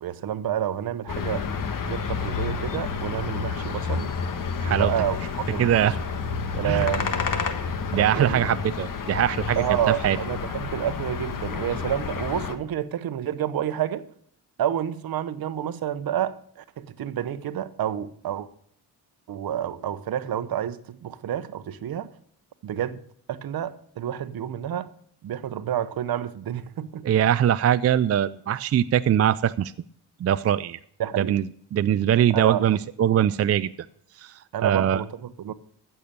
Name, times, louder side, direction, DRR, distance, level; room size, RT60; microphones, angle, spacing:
voice 1, 0.0-1.5 1.8-4.1 4.7-5.9 6.5-7.2 7.9-8.5 9.6-14.1 14.6-18.5 19.3-22.1 22.6-23.0 23.3-24.9 25.2-27.1 31.0-31.3 32.3-32.8 34.5-35.5, right 10 dB, 60° right, 0.9 m, -29 dB
sound 1, 1.1-12.6, left 5 dB, 55° left, 1.4 m, -30 dB
voice 2, 4.6-4.9 5.6-6.0 6.6-6.9 7.9-10.2 27.0-29.7 30.2-30.8 31.2-31.4 31.7-33.7 34.2-35.0, right 10 dB, 40° right, 0.4 m, -22 dB
14.5 x 7.0 x 6.7 m
cardioid pair, 85°, 39 cm